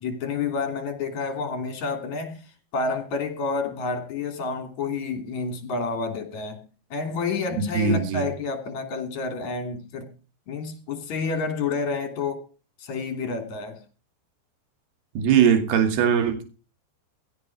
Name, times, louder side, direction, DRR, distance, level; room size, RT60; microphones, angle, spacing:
voice 1, 0.0-2.4 2.7-6.6 6.9-10.1 10.5-12.4 12.8-13.8, left 4 dB, 45° left, 3.8 m, -29 dB
voice 2, 7.5-8.3 15.2-16.4, right 7 dB, 70° right, 4.2 m, -21 dB
16.0 x 9.2 x 4.8 m
omnidirectional pair, 5.0 m